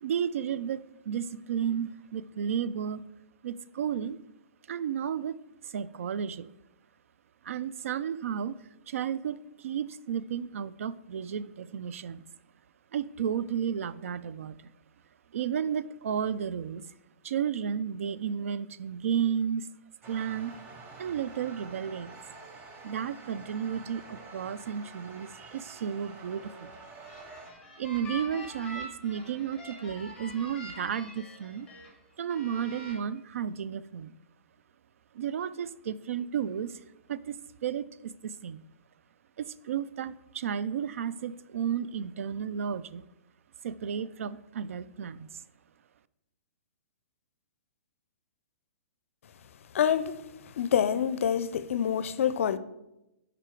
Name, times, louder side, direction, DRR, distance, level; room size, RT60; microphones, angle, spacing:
voice 1, 0.0-3.0 3.4-4.2 4.7-5.3 5.6-6.5 7.4-8.5 8.9-12.2 12.9-14.7 15.3-16.8 17.2-19.7 20.1-20.5 21.0-22.2 22.8-26.7 27.8-31.7 32.2-34.1 35.1-36.8 37.1-38.6 39.4-43.0 43.6-45.4, right 8 dB, 75° right, 0.3 m, -33 dB
sound 1, 20.0-27.5, right 3 dB, 20° right, 0.8 m, -48 dB
sound 2, 26.8-31.9 32.3-32.9, left 1 dB, 5° left, 2.1 m, -45 dB
voice 2, 49.7-50.2 50.6-52.6, left 8 dB, 70° left, 0.5 m, -26 dB
6.7 x 4.8 x 4.5 m
hypercardioid pair, 140°, 8 cm